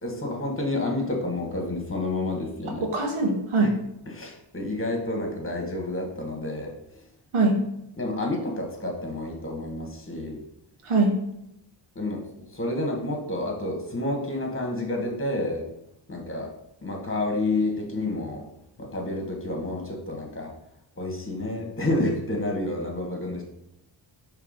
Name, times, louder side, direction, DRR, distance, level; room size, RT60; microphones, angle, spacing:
voice 1, 0.0-2.9 3.6-3.7 4.1-6.7 8.0-10.4 11.9-15.7 16.1-16.5 16.8-18.4 18.8-20.5 21.0-23.4, left 2 dB, 25° left, 1 dB, 1.5 m, -29 dB
voice 2, 2.8-3.7 7.3-7.6 10.8-11.2, right 2 dB, 90° right, 1 dB, 1.4 m, -22 dB
5.8 x 3.4 x 5.1 m, 0.82 s
wide cardioid pair, 110°, 48 cm